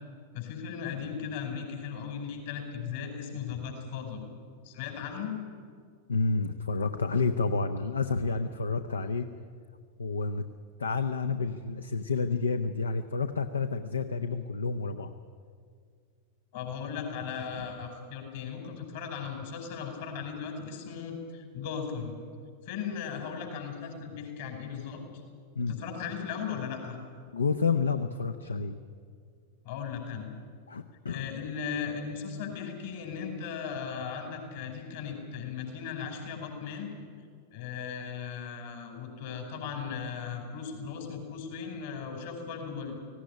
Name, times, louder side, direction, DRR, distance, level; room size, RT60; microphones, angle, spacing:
voice 1, 0.3-4.2 4.6-5.4 8.9-9.0 16.5-22.1 22.7-25.0 25.6-27.0 29.7-30.3 31.1-36.9 37.5-43.0, left 6 dB, 55° left, 3 dB, 5.1 m, -37 dB
voice 2, 6.1-9.3 10.0-10.4 10.8-15.1 25.6-25.7 27.3-28.8 30.7-31.3, left 4 dB, 75° left, 10 dB, 0.7 m, -29 dB
17.5 x 17.0 x 9.9 m, 2.1 s
figure-of-eight pair, 90°, 0 cm